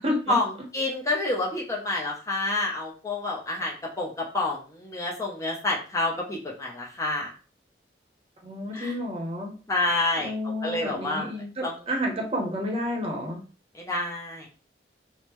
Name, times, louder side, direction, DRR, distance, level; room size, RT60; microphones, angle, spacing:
voice 1, 0.0-0.4 8.4-9.6 10.2-13.4, left 1 dB, 35° right, 0 dB, 0.7 m, -30 dB
voice 2, 0.7-7.3 8.7-8.9 9.7-10.3 10.6-11.3 11.6-11.7 13.7-14.5, left 2 dB, 20° left, -2 dB, 0.5 m, -28 dB
3.5 x 2.0 x 2.9 m, 0.37 s
head